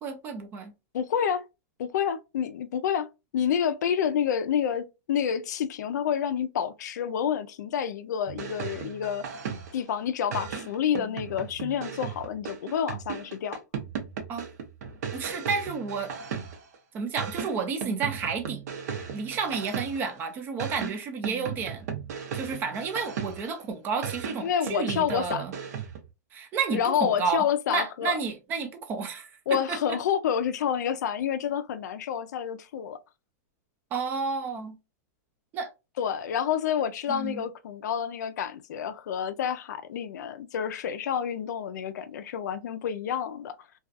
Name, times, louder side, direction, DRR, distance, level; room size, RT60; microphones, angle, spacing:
voice 1, 0.0-0.7 14.3-14.4 15.1-16.1 16.9-18.6 19.1-21.9 22.3-25.5 26.3-29.4 29.7-30.0 33.9-34.7 35.5-35.7 37.1-37.4, right 5 dB, 20° right, 0.3 m, -31 dB
voice 2, 0.9-1.4 1.8-3.1 3.3-9.3 9.7-13.6 24.4-25.4 26.7-28.2 29.5-33.0 36.0-43.6, left 8 dB, 80° left, 0.4 m, -28 dB
sound 1, 8.3-9.9 10.3-16.8 17.2-20.2 20.6-23.6 24.0-26.1, right 7 dB, 70° right, 0.7 m, -36 dB
2.3 x 2.3 x 2.5 m
supercardioid pair, 160°, 9 cm